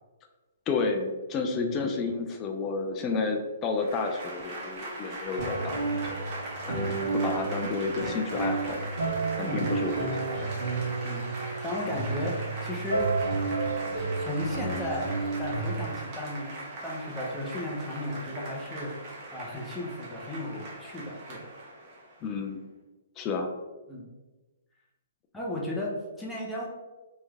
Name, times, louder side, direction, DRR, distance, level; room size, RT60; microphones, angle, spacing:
voice 1, 0.7-5.9 6.7-8.9 9.4-10.1 10.3-10.5 22.2-22.6 23.2-23.5, left 4 dB, 25° left, 4 dB, 0.4 m, -31 dB
Applause / Crowd, 3.7-22.3, right 2 dB, 30° right, 1.1 m, -40 dB
sound 1, 5.4-15.8, right 3 dB, 85° right, 1.2 m, -31 dB
voice 2, 11.6-13.1 14.2-15.1 15.4-16.6 16.8-18.9 19.3-21.5 23.9-24.1 25.3-26.7, left 1 dB, 10° left, -4 dB, 0.8 m, -34 dB
3.2 x 3.1 x 3.4 m, 1.2 s
hypercardioid pair, 150°, 0 cm